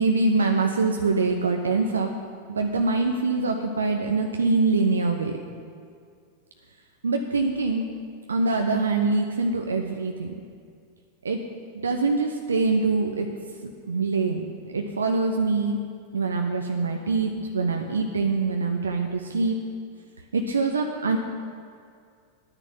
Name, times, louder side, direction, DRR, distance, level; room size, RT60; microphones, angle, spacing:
voice 1, 0.0-2.1 2.5-5.4 7.0-7.9 8.3-10.3 11.2-11.4 11.8-13.3 13.9-15.8 16.1-19.6 20.3-21.2, right 3 dB, 75° right, 3 dB, 0.8 m, -24 dB
10.0 x 9.8 x 7.3 m, 2.2 s
figure-of-eight pair, 90°, 0 cm